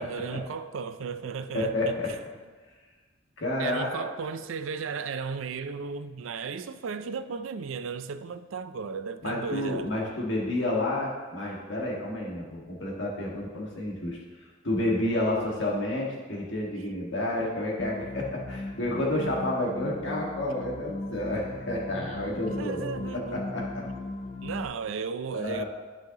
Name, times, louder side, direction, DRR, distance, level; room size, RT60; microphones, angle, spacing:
voice 1, 0.0-2.2 3.6-9.9 19.8-20.0 22.5-23.4 24.4-25.6, right 5 dB, 85° right, 0.4 m, -35 dB
voice 2, 1.5-2.1 3.4-4.1 9.2-14.2 14.6-22.8 23.1-23.8 25.3-25.6, left 1 dB, 65° left, 1.7 m, -30 dB
sound 1, 17.8-24.6, left 2 dB, 35° left, 0.5 m, -37 dB
11.5 x 5.7 x 2.9 m
head